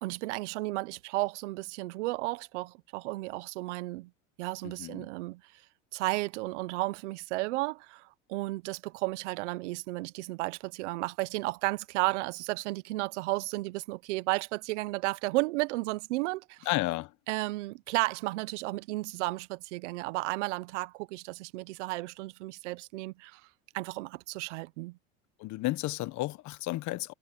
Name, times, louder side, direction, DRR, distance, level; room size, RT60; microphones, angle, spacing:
voice 1, 0.0-4.1 4.4-5.4 5.9-16.7 17.3-23.4 23.7-25.0, right 21 dB, 80° right, 1.0 m, -33 dB
voice 2, 4.6-5.1 16.6-17.1 25.4-27.1, left 18 dB, 55° left, 1.2 m, -32 dB
supercardioid pair, 105°, 35 cm